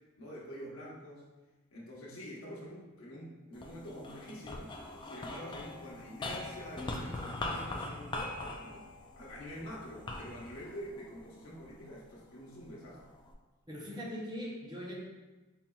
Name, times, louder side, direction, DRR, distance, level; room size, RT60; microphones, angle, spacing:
voice 1, 0.2-1.3 1.7-4.7 5.0-8.8 9.2-13.2, equal, 80° left, -5 dB, 1.1 m, -46 dB
sound 1, 3.5-12.0 12.6-13.3, left 2 dB, 20° left, 0.3 m, -42 dB
voice 2, 13.7-14.9, equal, 20° right, -3 dB, 0.7 m, -40 dB
4.1 x 4.1 x 2.3 m, 1.2 s
head